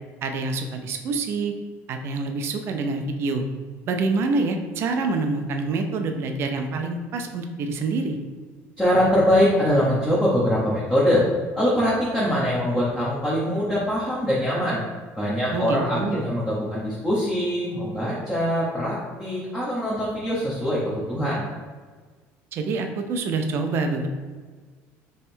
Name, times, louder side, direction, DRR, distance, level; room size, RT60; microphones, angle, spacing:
voice 1, 0.2-1.5 1.9-3.4 3.9-8.2 15.5-16.3 22.5-24.1, right 3 dB, 45° right, 5 dB, 0.5 m, -26 dB
voice 2, 8.8-11.2 11.6-14.8 15.2-21.5, equal, 10° left, -7 dB, 0.8 m, -23 dB
3.5 x 3.2 x 4.3 m, 1.5 s
cardioid pair, 150°, 6 cm